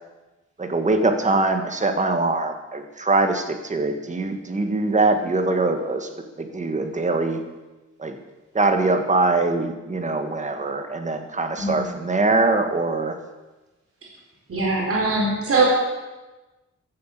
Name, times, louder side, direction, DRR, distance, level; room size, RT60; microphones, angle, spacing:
voice 1, 0.6-6.1 6.4-7.4 8.0-8.2 8.5-13.1, right 2 dB, 25° right, 6 dB, 1.6 m, -22 dB
voice 2, 14.5-15.7, right 3 dB, 50° right, -3 dB, 4.6 m, -21 dB
15.0 x 12.5 x 7.5 m, 1.1 s
wide cardioid pair, 180°, 30 cm